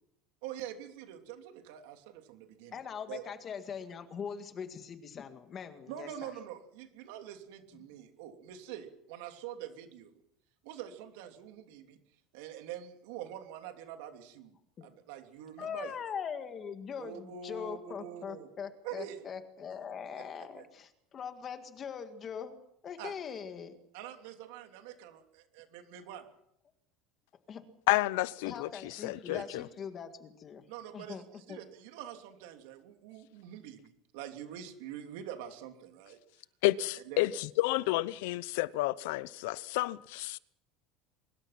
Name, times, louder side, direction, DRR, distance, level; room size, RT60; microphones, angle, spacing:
voice 1, 0.4-2.8 3.1-3.2 5.9-10.1 10.6-12.0 12.3-14.5 14.8-15.9 17.0-18.5 18.8-19.2 20.2-20.3 20.5-20.7 23.0-23.1 23.9-26.3 29.3-29.4 30.7-36.2 37.0-37.3, right 10 dB, 75° right, 3.2 m, -45 dB
voice 2, 2.7-6.3 14.8-14.9 15.6-22.6 22.8-23.8 27.5-27.7 28.4-30.7 30.9-31.6, left 7 dB, 25° left, 1.8 m, -41 dB
voice 3, 27.9-29.6 36.6-40.4, left 18 dB, 75° left, 0.8 m, -30 dB
23.5 x 22.0 x 6.0 m
cardioid pair, 175°, 0 cm